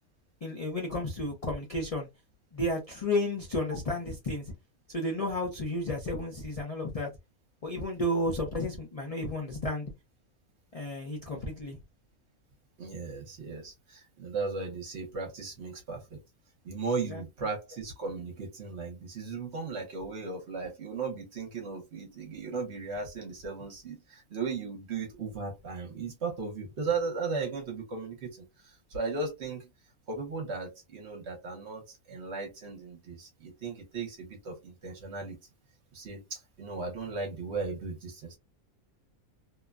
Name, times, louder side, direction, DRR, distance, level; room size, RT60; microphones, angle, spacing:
voice 1, 0.4-2.1 2.5-4.4 4.9-7.1 7.6-9.9 10.7-11.8 17.1-17.2, left 1 dB, 55° left, 0.4 m, -32 dB
voice 2, 12.8-16.2 16.6-29.7 30.1-35.4 35.9-38.4, right 4 dB, 55° right, 1.0 m, -36 dB
2.8 x 2.1 x 2.3 m
omnidirectional pair, 1.5 m